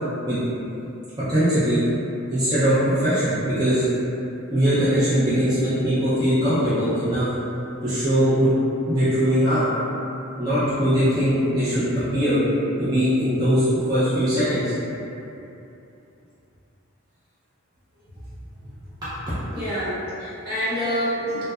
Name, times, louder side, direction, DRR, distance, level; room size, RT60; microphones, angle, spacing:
voice 1, 1.2-1.8 2.3-3.8 4.5-7.3 7.8-8.5 8.9-9.7 10.4-12.5 12.8-14.7 19.0-19.1, equal, 20° right, -14 dB, 0.4 m, -21 dB
voice 2, 19.5-21.4, equal, 50° right, -11 dB, 0.8 m, -27 dB
2.7 x 2.1 x 2.3 m, 2.8 s
head